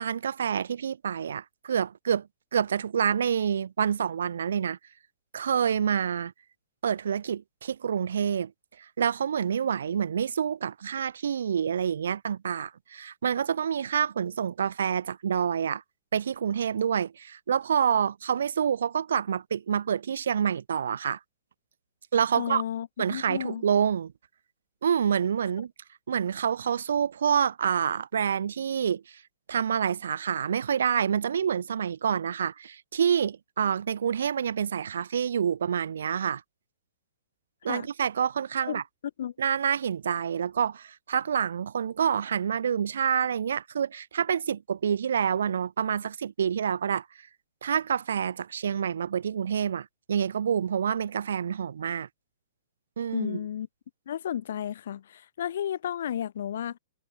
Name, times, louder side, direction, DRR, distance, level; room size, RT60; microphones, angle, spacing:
voice 1, 0.0-4.8 5.3-6.3 6.8-8.5 9.0-15.8 16.1-21.2 22.1-22.6 23.0-24.1 24.8-25.7 26.1-29.2 29.5-36.4 37.6-38.8 39.4-47.0 47.6-52.1 53.0-53.4, right 8 dB, 85° right, 4.3 m, -27 dB
voice 2, 22.4-23.6 37.7-37.9 38.7-38.8 39.2-39.3 53.1-53.7 54.1-56.8, left 10 dB, 55° left, 5.5 m, -33 dB
hypercardioid pair, 175°, 0 cm